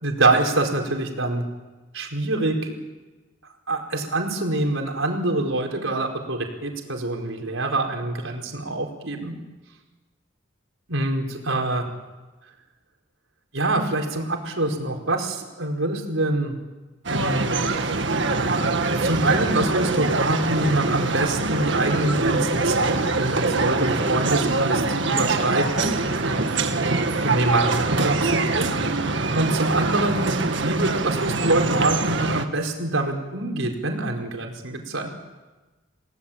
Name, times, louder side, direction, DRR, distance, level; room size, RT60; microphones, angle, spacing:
voice 1, 0.0-1.4 1.9-2.7 3.7-9.3 10.9-11.9 13.5-16.6 17.1-17.5 18.9-26.5 27.2-35.1, right 2 dB, 90° right, 2 dB, 4.7 m, -25 dB
sound 1, 17.0-32.4, right 3 dB, 65° right, 1.8 m, -24 dB
29.5 x 18.5 x 8.8 m, 1.2 s
head